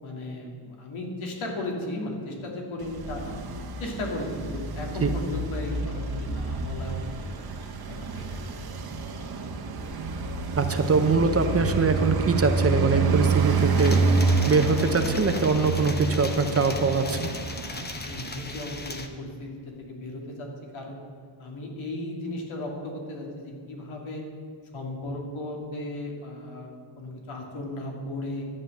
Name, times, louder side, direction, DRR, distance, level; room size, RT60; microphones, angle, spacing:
voice 1, 0.0-3.4 3.8-7.3 7.9-8.3 8.6-8.7 17.7-20.5 20.7-21.0 21.4-24.2 24.7-28.5, left 1 dB, 85° left, 0 dB, 2.6 m, -36 dB
Traffic noise roadway noise, 2.8-18.3, right 4 dB, 50° right, 1.1 m, -28 dB
voice 2, 10.5-14.0 14.5-17.3, right 4 dB, 30° right, 7 dB, 0.7 m, -23 dB
sound 1, 13.7-19.1, left 3 dB, 20° left, 0.9 m, -38 dB
12.0 x 8.7 x 6.6 m, 2.2 s
wide cardioid pair, 155°, 47 cm